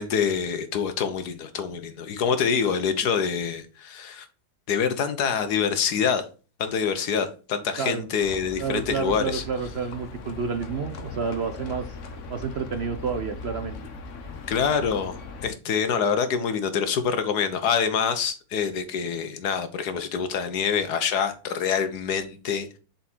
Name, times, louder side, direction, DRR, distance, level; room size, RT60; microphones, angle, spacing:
voice 1, 0.0-4.3 4.7-6.2 6.6-9.4 14.5-15.1 15.4-22.8, left 6 dB, 85° left, 10 dB, 1.6 m, -26 dB
Livestock farm animals working animals, 8.2-15.5, left 3 dB, 55° left, 1.3 m, -39 dB
voice 2, 8.6-12.0 12.3-13.8, right 5 dB, 60° right, 8 dB, 0.7 m, -30 dB
7.4 x 4.3 x 4.5 m, 0.35 s
omnidirectional pair, 1.7 m